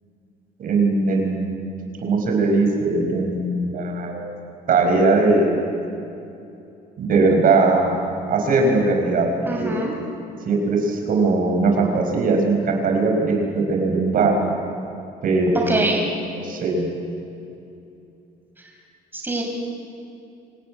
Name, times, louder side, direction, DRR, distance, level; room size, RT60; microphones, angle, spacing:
voice 1, 0.6-1.5 2.0-4.3 4.7-5.8 7.0-8.0 8.3-9.3 9.6-9.8 10.4-14.3 15.2-15.8 16.3-16.9, right 3 dB, 55° right, 2 dB, 4.9 m, -20 dB
voice 2, 9.5-9.9 15.7-16.1 19.1-19.4, right 2 dB, 10° right, 0 dB, 6.0 m, -24 dB
26.0 x 14.5 x 9.7 m, 2.6 s
cardioid pair, 110°, 17 cm